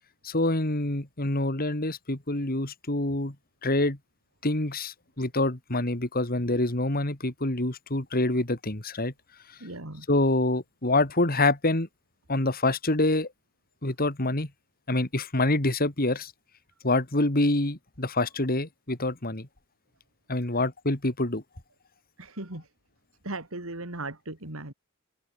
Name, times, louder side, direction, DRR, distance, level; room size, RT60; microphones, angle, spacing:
voice 1, 0.2-3.3 3.6-4.0 4.4-9.1 10.1-11.9 12.3-13.3 13.8-14.5 14.9-16.3 16.8-19.5 20.3-21.4, left 2 dB, 40° left, 2.7 m, -26 dB
voice 2, 9.6-10.1 20.5-20.6 22.2-22.7 23.2-24.7, right 2 dB, 65° right, 3.1 m, -37 dB
head